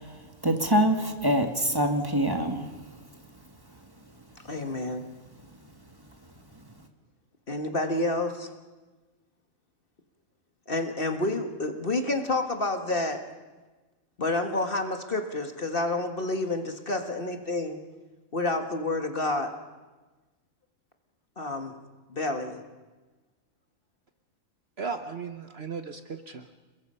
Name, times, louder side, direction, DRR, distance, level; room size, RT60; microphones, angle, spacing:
voice 1, 0.0-2.7, equal, 15° right, 5 dB, 2.0 m, -25 dB
voice 2, 4.5-5.0 7.5-8.5 10.7-13.2 14.2-17.8 18.3-19.5 21.4-21.7 22.1-22.6, left 2 dB, 40° left, 5 dB, 1.8 m, -29 dB
voice 3, 24.8-26.6, right 5 dB, 50° right, 8 dB, 1.1 m, -36 dB
30.0 x 21.0 x 5.6 m, 1.2 s
omnidirectional pair, 1.5 m